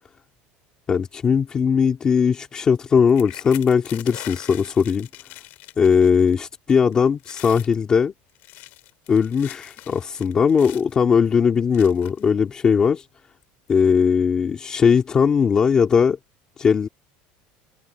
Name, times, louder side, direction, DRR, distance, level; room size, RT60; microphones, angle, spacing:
voice 1, 0.9-5.1 5.8-8.1 9.1-13.1 13.7-16.2 16.6-16.9, left 6 dB, 20° left, 2.0 m, -19 dB
sound 1, 3.1-6.4 6.7-6.9 7.2-7.7 8.3-11.0 11.7-12.3 13.0-13.1 13.4-13.7, left 19 dB, 50° left, 4.2 m, -42 dB
cardioid pair, 175°, 4 cm